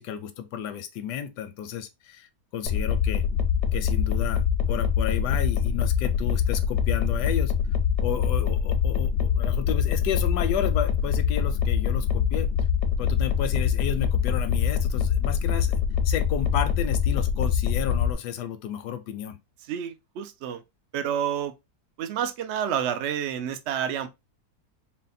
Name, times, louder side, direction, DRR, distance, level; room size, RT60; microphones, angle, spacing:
voice 1, 0.0-2.3 2.5-3.3 3.7-7.5 8.0-12.5 13.0-19.4, left 9 dB, 90° left, 1.3 m, -32 dB
sound 1, 2.7-18.1, left 8 dB, 60° left, 0.7 m, -24 dB
voice 2, 19.7-20.6 20.9-21.5 22.0-24.1, right 9 dB, 75° right, 0.6 m, -29 dB
4.1 x 2.2 x 3.9 m
omnidirectional pair, 1.7 m